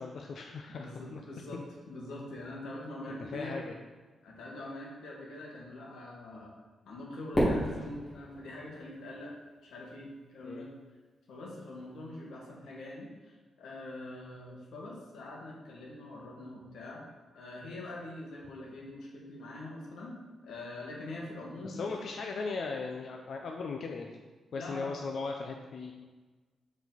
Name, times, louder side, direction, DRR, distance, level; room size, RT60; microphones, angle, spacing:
voice 1, 0.0-1.2 1.5-1.6 3.1-3.8 10.4-10.7 21.6-24.1 24.5-25.9, left 4 dB, 50° left, 2 dB, 0.4 m, -38 dB
voice 2, 0.7-1.6 1.9-3.6 4.2-6.5 6.9-9.3 9.6-10.7 11.3-20.2 20.4-22.1 24.5-25.1, left 1 dB, 75° left, -3 dB, 1.6 m, -44 dB
Fireworks, 7.3-9.7, equal, 25° left, 1.5 m, -32 dB
7.1 x 4.1 x 3.9 m, 1.3 s
wide cardioid pair, 175°, 0 cm